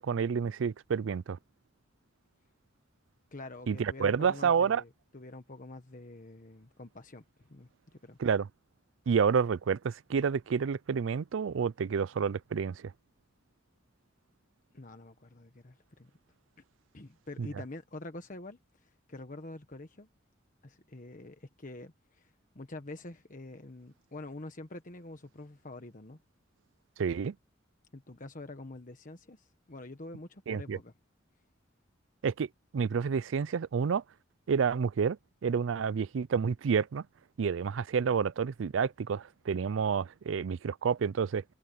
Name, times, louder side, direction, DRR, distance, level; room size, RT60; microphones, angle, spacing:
voice 1, 0.0-1.4 3.7-4.8 8.2-8.5 9.1-12.9 17.4-17.5 27.0-27.3 30.5-30.8 32.2-34.0 34.5-37.0 37.4-41.4, right 6 dB, 80° right, 0.4 m, -29 dB
voice 2, 3.3-8.2 14.7-16.1 16.9-20.1 20.6-26.2 27.9-30.9, left 2 dB, 45° left, 1.3 m, -46 dB
head